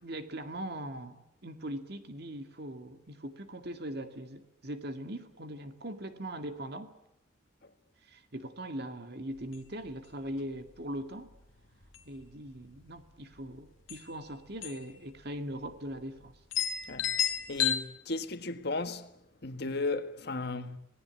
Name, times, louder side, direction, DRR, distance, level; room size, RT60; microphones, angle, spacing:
voice 1, 0.0-6.9 8.1-11.3 12.1-16.3, right 1 dB, 55° right, 2.1 m, -40 dB
sound 1, 9.4-9.5 9.9-10.0 10.4-10.7 11.3-11.5 11.8-12.5 13.5-13.6 13.9-14.1 14.6-14.9 15.2-15.3 16.0-16.1 16.5-17.8, left 9 dB, 90° left, 1.9 m, -31 dB
voice 2, 17.5-19.1 19.4-20.8, left 3 dB, 55° left, 1.6 m, -35 dB
26.0 x 19.0 x 9.8 m
head